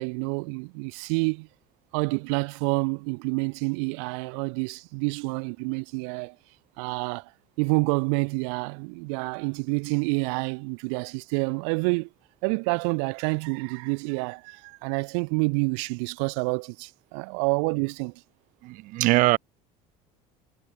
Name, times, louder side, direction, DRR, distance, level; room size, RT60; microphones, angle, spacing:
voice 1, 0.0-1.5 1.9-6.3 6.8-7.3 7.6-12.1 12.4-18.1, right 37 dB, 80° right, 6.3 m, -28 dB
voice 2, 18.6-19.4, right 20 dB, 60° right, 1.4 m, -21 dB
cardioid pair, 130°, 15 cm